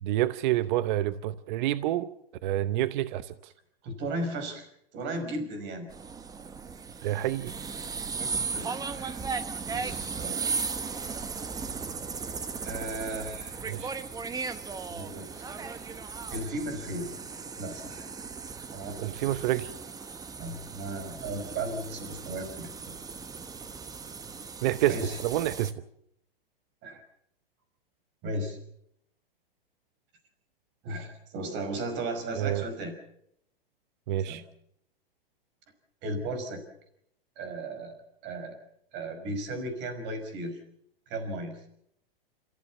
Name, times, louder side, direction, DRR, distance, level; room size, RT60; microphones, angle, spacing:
voice 1, 0.0-2.2 2.4-3.3 7.0-7.5 13.7-13.9 19.0-19.7 24.6-25.7 32.4-32.6 34.1-34.4, right 14 dB, 55° right, 0.9 m, -28 dB
voice 2, 3.8-4.7 4.9-5.9 8.2-8.7 9.0-9.3 9.7-10.4 12.6-13.6 14.9-15.9 16.3-17.1 17.6-18.1 18.7-19.4 20.4-23.0 24.9-25.2 26.8-27.0 28.2-28.6 30.8-32.9 34.2-34.4 36.0-36.6 37.4-38.0 38.2-38.5 38.9-40.6 41.1-41.6, right 1 dB, 40° right, 5.5 m, -36 dB
sound 1, 5.9-25.7, right 5 dB, 10° right, 1.0 m, -37 dB
27.5 x 15.0 x 7.1 m
hypercardioid pair, 120°, 29 cm